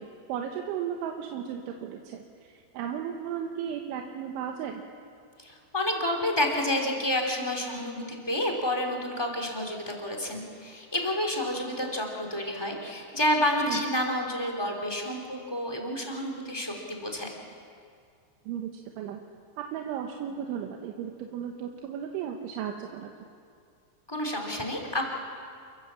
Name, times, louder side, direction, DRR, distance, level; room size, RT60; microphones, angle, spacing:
voice 1, 0.0-4.8 13.6-13.9 18.5-19.2 19.6-23.1, right 8 dB, 85° right, 2 dB, 3.5 m, -35 dB
voice 2, 5.4-17.3 24.1-25.0, left 1 dB, 10° left, 0 dB, 1.8 m, -29 dB
28.5 x 15.5 x 7.5 m, 2.3 s
omnidirectional pair, 5.3 m